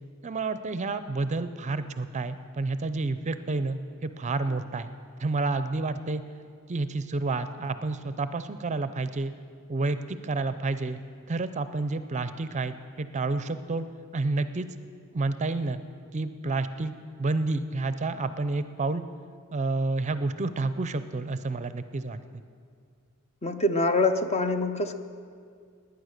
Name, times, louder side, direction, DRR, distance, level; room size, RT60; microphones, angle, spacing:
voice 1, 0.2-4.9 5.2-6.2 6.7-9.3 9.7-11.0 11.3-13.9 14.1-14.7 15.1-15.8 16.1-16.9 17.2-19.0 19.5-22.4, right 3 dB, 35° right, 12 dB, 0.5 m, -29 dB
voice 2, 23.4-25.0, left 2 dB, 30° left, 8 dB, 0.7 m, -25 dB
19.5 x 9.6 x 6.5 m, 2.2 s
head